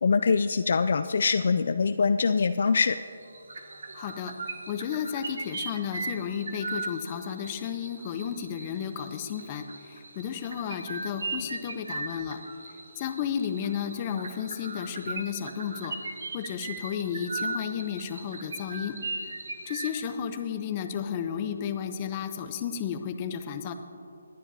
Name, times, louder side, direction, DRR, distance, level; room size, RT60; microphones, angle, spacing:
voice 1, 0.0-3.0, left 5 dB, 60° left, 10 dB, 0.3 m, -23 dB
sound 1, 2.7-2.9 3.2-20.0, right 3 dB, 65° right, 1.1 m, -38 dB
voice 2, 3.9-4.3 4.7-12.4 13.0-16.0 16.3-19.0 19.7-23.7, left 8 dB, 25° left, 8 dB, 0.7 m, -33 dB
20.5 x 10.0 x 2.8 m, 2.7 s
figure-of-eight pair, 155°, 0 cm